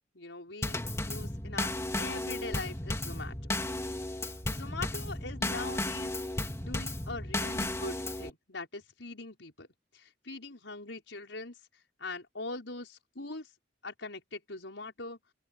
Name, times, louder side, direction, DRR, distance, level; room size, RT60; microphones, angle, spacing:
voice 1, 0.1-3.3 4.0-4.2 4.5-6.1 6.6-9.7 9.9-11.6 12.0-13.5 13.8-15.2, left 3 dB, 80° left, 5.8 m, -42 dB
Drum kit / Snare drum / Bass drum, 0.6-8.3, left 1 dB, 15° left, 2.3 m, -34 dB
open air
head